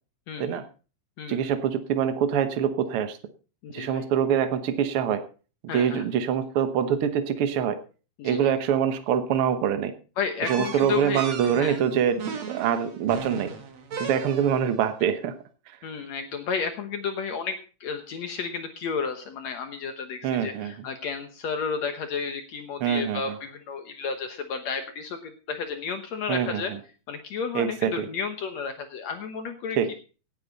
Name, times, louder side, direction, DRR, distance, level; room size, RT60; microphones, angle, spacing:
voice 1, 0.3-0.6 1.2-1.5 3.6-4.1 5.7-6.0 8.2-8.5 10.2-11.8 15.8-26.7 27.1-29.9, left 5 dB, 65° left, 7 dB, 1.8 m, -32 dB
voice 2, 1.3-3.2 3.7-5.2 5.7-7.8 8.2-9.9 10.4-13.5 14.0-15.3 20.2-20.7 22.8-23.2 26.3-26.6 27.5-28.1 29.8-29.9, right 8 dB, 80° right, 9 dB, 1.2 m, -24 dB
sound 1, 10.5-14.7, right 5 dB, 55° right, 2.8 m, -36 dB
17.5 x 9.5 x 4.1 m, 0.36 s
omnidirectional pair, 4.2 m